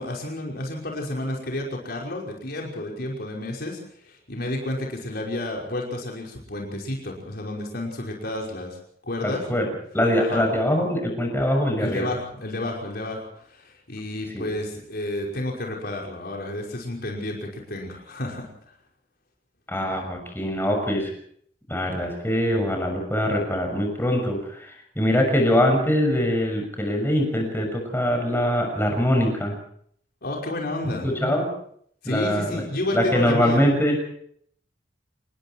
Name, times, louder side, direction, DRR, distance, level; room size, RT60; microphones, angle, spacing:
voice 1, 0.0-8.8 9.0-9.4 10.2-10.5 11.8-18.5 30.2-31.1 32.0-33.6, left 1 dB, 60° left, -1 dB, 5.5 m, -31 dB
voice 2, 9.2-9.7 9.9-12.1 14.3-14.4 19.7-21.1 21.7-29.5 31.0-31.5 32.0-32.6 32.9-34.0, equal, 15° left, 2 dB, 6.5 m, -23 dB
27.5 x 20.5 x 4.7 m, 0.63 s
head